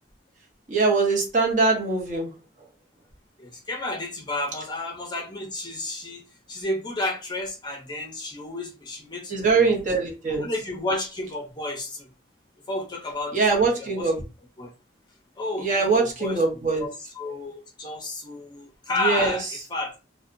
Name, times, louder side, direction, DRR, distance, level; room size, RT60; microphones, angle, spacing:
voice 1, 0.7-2.3 9.3-10.4 13.3-14.2 15.6-16.9 19.0-19.4, right 4 dB, 45° right, 0 dB, 0.9 m, -22 dB
voice 2, 3.4-6.2 6.5-9.3 9.6-9.8 10.3-12.1 12.7-14.1 14.6-14.7 15.4-19.9, left 2 dB, 25° left, 0 dB, 0.6 m, -31 dB
2.7 x 2.2 x 2.5 m, 0.31 s
head